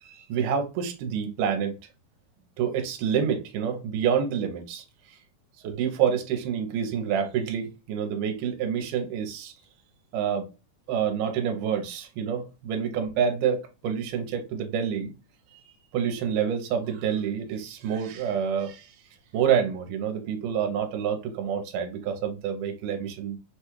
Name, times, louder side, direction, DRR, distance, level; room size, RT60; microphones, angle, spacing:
voice 1, 0.0-1.7 2.6-4.8 5.6-9.5 10.1-10.5 10.9-15.1 15.5-15.6 15.9-18.9 19.3-23.4, right 8 dB, 80° right, 2.3 m, -27 dB
5.7 x 2.3 x 3.1 m
omnidirectional pair, 3.8 m